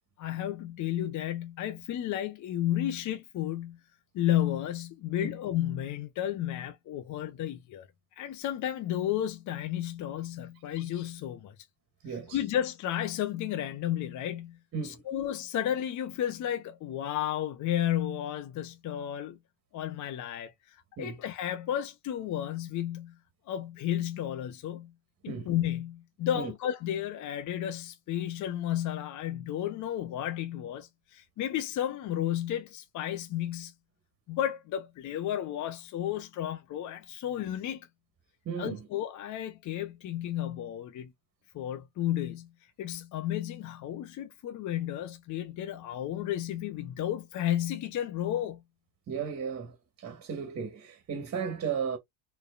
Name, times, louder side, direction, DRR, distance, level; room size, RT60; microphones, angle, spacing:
voice 1, 0.2-3.8 4.1-7.9 8.2-11.5 12.1-14.6 14.8-19.4 19.7-23.1 23.5-24.9 25.2-33.7 34.3-37.9 38.6-41.1 41.5-42.5 42.8-48.6, left 11 dB, 45° left, 0.9 m, -32 dB
voice 2, 12.0-12.4 14.7-15.0 21.0-21.1 25.3-25.5 26.3-26.5 38.4-38.8 49.1-52.0, right 6 dB, 35° right, 1.7 m, -35 dB
4.5 x 3.4 x 2.5 m
supercardioid pair, 105°, 40 cm